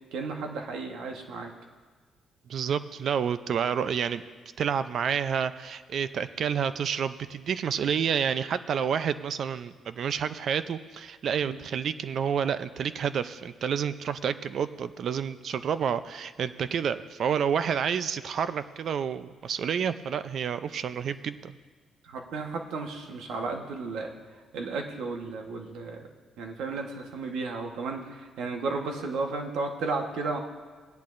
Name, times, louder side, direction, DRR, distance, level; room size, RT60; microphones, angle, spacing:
voice 1, 0.1-1.5 11.4-11.6 22.0-26.1 26.4-30.4, right 3 dB, 80° right, 3 dB, 1.2 m, -34 dB
voice 2, 2.5-4.2 4.6-21.6, right 7 dB, 60° right, 13 dB, 0.4 m, -29 dB
17.5 x 10.5 x 2.6 m, 1.4 s
cardioid pair, 90°, 0 cm